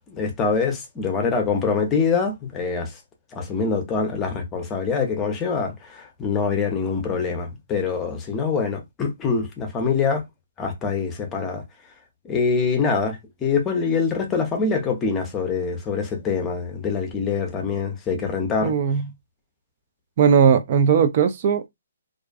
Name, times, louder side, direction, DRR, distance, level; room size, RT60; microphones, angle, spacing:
voice 1, 0.0-2.9 3.3-10.2 10.6-11.6 12.2-18.7, left 5 dB, 15° left, 0.6 m, -24 dB
voice 2, 18.6-19.0 20.2-21.7, right 7 dB, 45° right, 0.3 m, -18 dB
2.4 x 2.3 x 2.3 m
hypercardioid pair, 145°, 0 cm